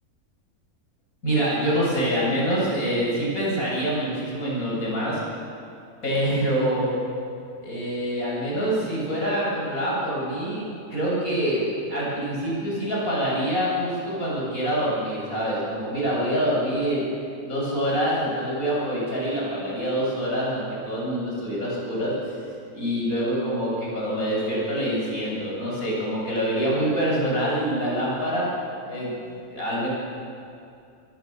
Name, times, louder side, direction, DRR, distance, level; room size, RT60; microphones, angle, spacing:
voice 1, 1.2-5.2 6.0-6.9 7.6-17.1 17.5-22.1 22.7-28.5 28.9-29.9, equal, 75° left, -6 dB, 8.7 m, -25 dB
26.5 x 24.5 x 6.9 m, 2.5 s
omnidirectional pair, 1.5 m